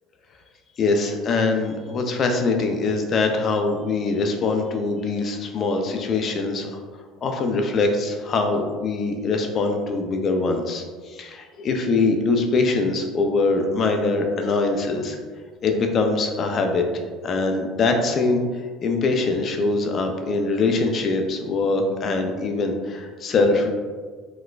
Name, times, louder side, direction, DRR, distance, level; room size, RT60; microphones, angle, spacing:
voice 1, 0.8-6.8 7.2-15.2 15.6-16.8 17.2-18.4 18.8-23.7, left 3 dB, 45° left, 4 dB, 0.5 m, -23 dB
4.1 x 2.1 x 2.4 m, 1.5 s
hypercardioid pair, 80°, 0 cm